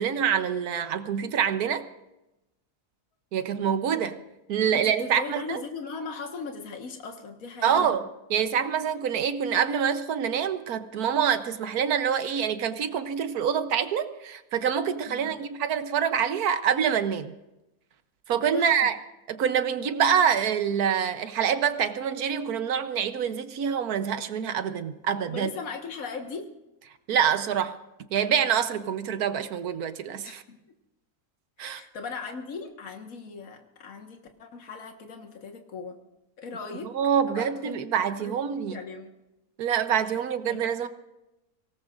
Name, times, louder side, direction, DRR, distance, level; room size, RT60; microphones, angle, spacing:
voice 1, 0.0-1.9 3.3-4.2 4.5-5.6 7.6-17.4 18.3-19.0 19.3-25.5 27.1-27.7 28.1-30.4 31.6-31.8 36.8-38.8 39.6-40.9, right 8 dB, 75° right, 10 dB, 1.4 m, -26 dB
voice 2, 4.7-8.0 15.1-15.4 18.5-18.9 25.3-26.5 30.3-30.6 31.6-36.0 36.4-37.0 37.2-37.8 38.2-38.3 38.7-39.1 40.4-40.6, left 4 dB, 65° left, 4 dB, 1.9 m, -38 dB
24.5 x 18.0 x 2.5 m, 0.94 s
omnidirectional pair, 1.6 m